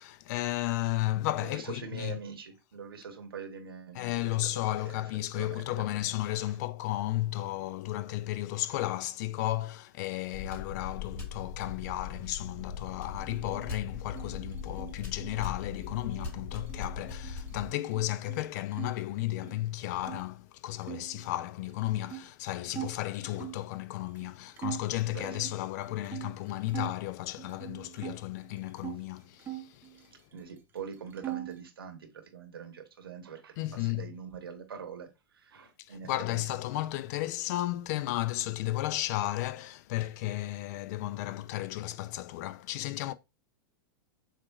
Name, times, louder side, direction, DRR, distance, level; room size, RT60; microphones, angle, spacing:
voice 1, 0.0-2.2 4.0-29.9 33.6-34.1 35.9-43.1, left 15 dB, 45° left, 0.4 m, -34 dB
voice 2, 1.4-4.3 4.8-5.0 5.3-5.7 6.5-6.6 8.6-8.8 19.9-20.0 25.1-25.5 30.3-36.6, right 6 dB, 75° right, 1.0 m, -44 dB
sound 1, 10.3-17.7, left 6 dB, 20° left, 2.8 m, -40 dB
sound 2, 13.2-18.9 19.2-20.2 20.8-23.7 24.2-24.3 24.6-27.0 27.4-29.0 29.4-30.5 30.8-31.6, right 13 dB, 15° right, 0.7 m, -43 dB
7.1 x 2.4 x 2.3 m
figure-of-eight pair, 100°, 12 cm